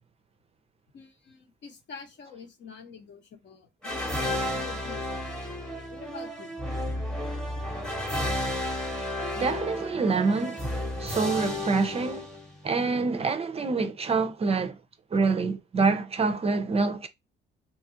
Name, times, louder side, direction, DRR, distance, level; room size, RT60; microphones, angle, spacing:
voice 1, 0.9-5.4 5.9-6.6 14.2-14.3, left 5 dB, 65° left, 0.9 m, -46 dB
sound 1, 3.8-12.7, left 1 dB, 5° left, 0.8 m, -32 dB
voice 2, 9.4-10.6 11.0-12.3 12.6-14.7 15.1-17.1, right 4 dB, 30° right, 0.4 m, -26 dB
2.9 x 2.3 x 2.7 m
cardioid pair, 90°, 20 cm